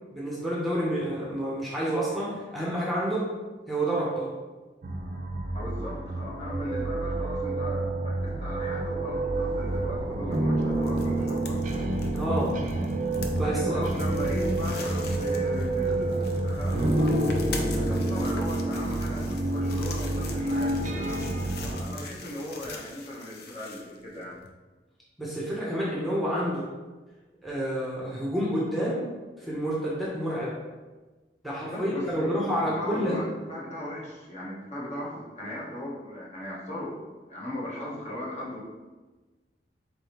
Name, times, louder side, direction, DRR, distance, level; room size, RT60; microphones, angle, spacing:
voice 1, 0.1-3.3 3.7-4.3 12.1-12.6 13.3-13.8 25.2-26.7 27.4-29.0 29.4-30.6 31.4-33.2, right 1 dB, ahead, -6 dB, 0.7 m, -29 dB
sound 1, 4.8-21.8, right 2 dB, 45° right, 0.4 m, -28 dB
voice 2, 5.5-11.8 13.4-21.2 21.6-24.4 31.7-32.4 32.7-38.6, left 1 dB, 40° left, -5 dB, 1.0 m, -37 dB
sound 2, 9.3-24.5, left 3 dB, 60° left, 0.5 m, -43 dB
4.1 x 3.4 x 2.9 m, 1.2 s
head